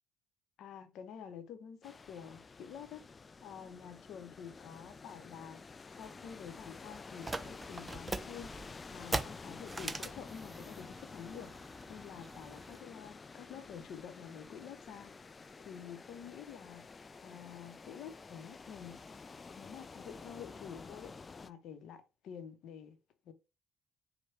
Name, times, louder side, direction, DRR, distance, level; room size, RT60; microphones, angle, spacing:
voice 1, 0.6-3.0 3.4-5.6 6.0-11.5 11.9-16.9 17.2-19.0 19.6-21.1 21.4-23.0 23.2-23.3, left 8 dB, 65° left, 0.6 m, -49 dB
sound 1, 1.8-21.5, left 4 dB, 35° left, 0.3 m, -50 dB
sound 2, 7.2-12.8, right 2 dB, 20° right, 0.5 m, -42 dB
4.6 x 2.1 x 4.4 m
hypercardioid pair, 50°, 0 cm